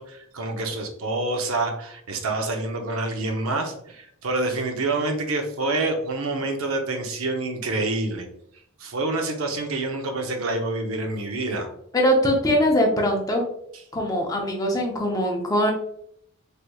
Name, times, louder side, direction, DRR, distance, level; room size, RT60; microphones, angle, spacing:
voice 1, 0.0-8.3 8.8-11.7, right 2 dB, 75° right, 3 dB, 0.6 m, -27 dB
voice 2, 11.9-13.4 13.9-15.7, equal, 15° left, 0 dB, 0.5 m, -21 dB
3.3 x 3.0 x 2.2 m, 0.70 s
head